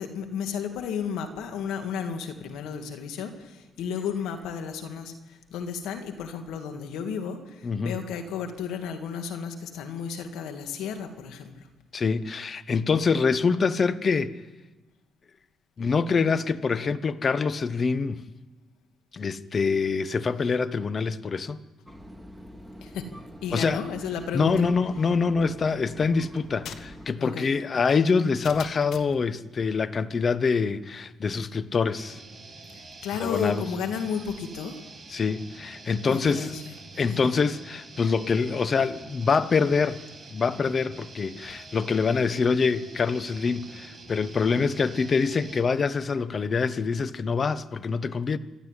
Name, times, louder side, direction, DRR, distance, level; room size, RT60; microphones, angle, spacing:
voice 1, 0.0-11.7 22.8-23.1 23.4-24.5 27.2-27.5 32.7-34.8 36.0-37.2, left 7 dB, 90° left, 2.2 m, -33 dB
voice 2, 7.6-8.0 11.9-14.4 15.8-18.2 19.1-21.6 23.5-23.8 24.3-32.2 33.2-33.6 35.1-36.5 37.0-40.0 40.3-48.4, left 5 dB, 40° left, 1.0 m, -25 dB
sound 1, 21.9-27.1, equal, 5° right, 2.0 m, -45 dB
sound 2, 26.4-29.3, left 8 dB, 75° left, 1.2 m, -44 dB
sound 3, 31.9-45.7, right 3 dB, 25° right, 5.6 m, -46 dB
26.5 x 12.0 x 10.0 m
cardioid pair, 90°, 0 cm